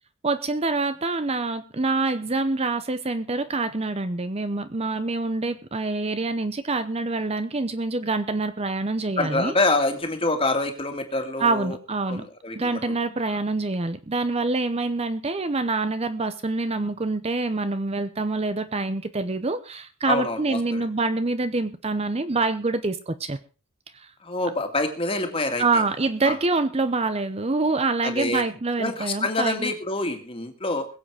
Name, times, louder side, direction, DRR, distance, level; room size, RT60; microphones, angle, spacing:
voice 1, 0.2-9.5 11.4-12.2 12.6-23.4 23.9-24.1 25.6-29.7, right 3 dB, 30° right, 12 dB, 0.7 m, -26 dB
voice 2, 9.2-11.8 12.1-12.8 13.3-13.4 20.0-20.9 24.2-25.8 26.2-26.4 28.0-28.4 28.8-30.9, left 2 dB, 25° left, 5 dB, 2.2 m, -26 dB
21.5 x 7.8 x 4.9 m, 0.36 s
head